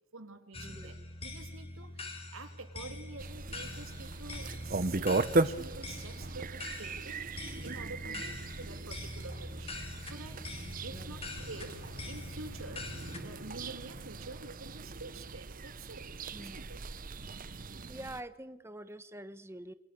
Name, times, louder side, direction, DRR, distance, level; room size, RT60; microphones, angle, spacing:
voice 1, 0.1-0.9 1.2-16.1 16.4-16.8, right 3 dB, 75° right, 6 dB, 3.2 m, -48 dB
sound 1, 0.5-13.2, left 2 dB, 30° left, 3.0 m, -44 dB
voice 2, 0.6-1.0 8.0-8.2 10.9-11.2 16.3-16.7 17.9-19.7, right 1 dB, 10° right, 12 dB, 1.1 m, -46 dB
sound 2, 3.2-18.2, right 3 dB, 40° right, 0.8 m, -37 dB
Bowed string instrument, 10.5-14.6, left 4 dB, 60° left, 1.9 m, -54 dB
28.5 x 24.5 x 6.9 m, 1.0 s
head